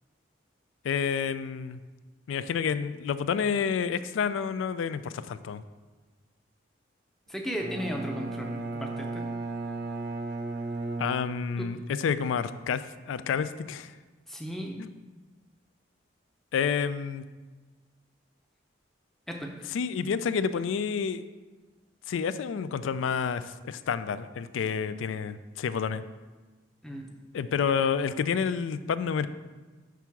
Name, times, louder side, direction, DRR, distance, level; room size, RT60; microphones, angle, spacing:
voice 1, 0.8-1.8 2.3-5.6 11.0-13.9 14.8-14.9 16.5-17.2 19.7-21.3 22.1-26.0 27.3-29.3, left 6 dB, 85° left, 14 dB, 0.3 m, -29 dB
voice 2, 7.3-9.3 14.3-14.8 19.3-19.5 26.8-27.1, equal, ahead, 1 dB, 0.6 m, -35 dB
Bowed string instrument, 7.6-11.8, right 3 dB, 55° right, 0.5 m, -35 dB
6.1 x 3.5 x 5.8 m, 1.3 s
head